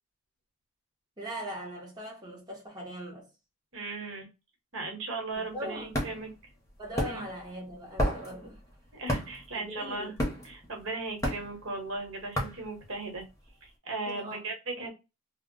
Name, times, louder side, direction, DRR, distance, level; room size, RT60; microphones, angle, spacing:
voice 1, 1.2-3.3 5.4-5.9 6.8-8.6 9.5-10.1 14.0-14.9, equal, 20° right, 0.7 m, -40 dB
voice 2, 3.7-4.3 4.7-6.3 7.0-7.2 8.9-10.1 10.4-13.2 13.6-14.9, right 3 dB, 85° right, 1.0 m, -37 dB
sound 1, 5.3-13.5, equal, 15° left, 0.7 m, -33 dB
2.0 x 2.0 x 3.6 m
head